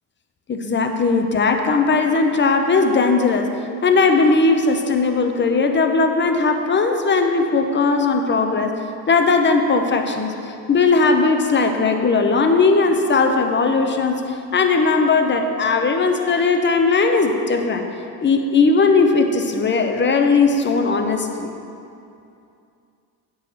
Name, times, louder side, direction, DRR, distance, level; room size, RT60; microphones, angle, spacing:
voice 1, 0.5-3.5 3.8-8.7 9.1-10.3 10.7-14.2 14.5-17.8 18.2-21.5, left 4 dB, 25° left, 5 dB, 0.8 m, -18 dB
8.9 x 4.0 x 6.5 m, 2.6 s
supercardioid pair, 80°, 41 cm